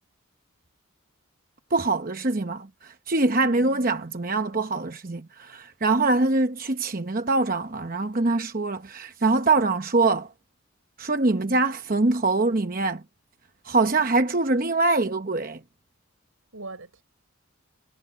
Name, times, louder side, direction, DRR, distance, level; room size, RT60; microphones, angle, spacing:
voice 1, 1.7-10.3 11.0-13.0 13.6-15.6, right 3 dB, 40° right, 0.9 m, -24 dB
voice 2, 3.5-4.2 16.5-17.0, right 2 dB, 80° right, 4.3 m, -42 dB
head